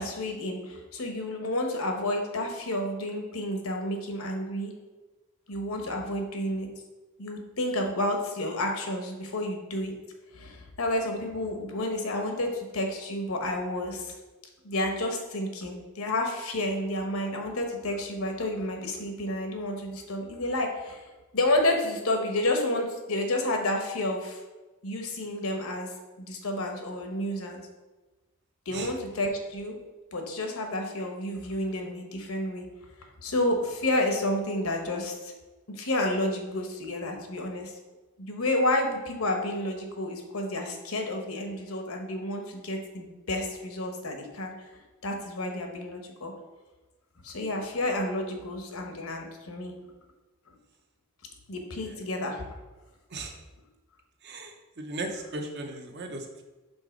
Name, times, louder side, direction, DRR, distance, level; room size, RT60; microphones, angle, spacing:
voice 1, 0.0-4.7 5.5-6.7 7.2-9.9 10.3-14.2 14.6-21.0 21.3-24.4 24.8-25.9 26.2-27.6 28.7-29.8 30.1-32.6 33.2-35.3 35.7-37.7 38.2-44.5 45.0-46.3 47.2-49.7 51.5-52.4, left 1 dB, 75° left, 3 dB, 1.0 m, -30 dB
voice 2, 54.2-56.4, right 2 dB, 50° right, 4 dB, 0.8 m, -37 dB
5.4 x 3.9 x 5.1 m, 1.2 s
head